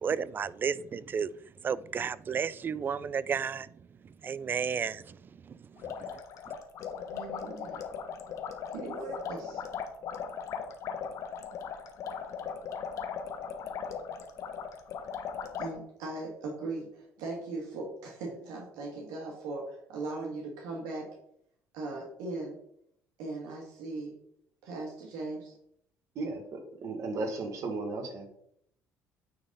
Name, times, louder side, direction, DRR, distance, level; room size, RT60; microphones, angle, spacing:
voice 1, 0.0-1.3 1.6-3.7 4.2-5.2, right 6 dB, 35° right, 19 dB, 0.4 m, -32 dB
sound 1, 5.8-15.7, left 6 dB, 65° left, 1.1 m, -38 dB
voice 2, 7.1-7.8 8.7-9.6 15.6-21.1 21.7-22.6 23.2-24.2 24.6-25.5, right 2 dB, 90° right, -1 dB, 1.7 m, -39 dB
voice 3, 26.1-28.3, right 3 dB, 60° right, 4 dB, 1.7 m, -35 dB
9.4 x 4.0 x 4.0 m, 0.71 s
cardioid pair, 100°, 6 cm